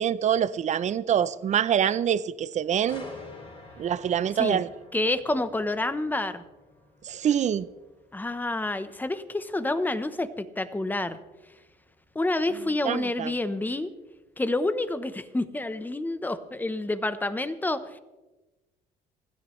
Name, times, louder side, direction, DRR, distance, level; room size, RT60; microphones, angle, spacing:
voice 1, 0.0-3.0 3.8-4.7 7.1-7.7 12.8-13.3, right 9 dB, 45° right, 16 dB, 0.6 m, -25 dB
sound 1, 2.9-16.7 17.1-17.4, left 2 dB, 30° left, 4.2 m, -51 dB
voice 2, 4.9-6.4 8.1-11.2 12.1-13.9 14.4-18.0, left 2 dB, 10° left, 12 dB, 0.9 m, -28 dB
28.5 x 10.0 x 3.2 m, 1.1 s
cardioid pair, 110°, 17 cm